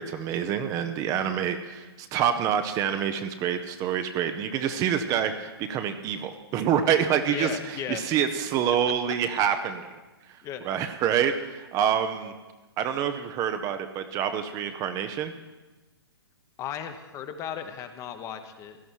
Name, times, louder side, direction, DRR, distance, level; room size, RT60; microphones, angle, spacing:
voice 1, 0.0-9.9 10.3-12.3 12.8-15.3, right 8 dB, 25° right, 8 dB, 0.8 m, -27 dB
voice 2, 7.3-8.0 10.4-10.7 16.6-18.8, left 9 dB, 25° left, 8 dB, 1.1 m, -35 dB
17.0 x 12.5 x 4.6 m, 1.2 s
hypercardioid pair, 125°, 13 cm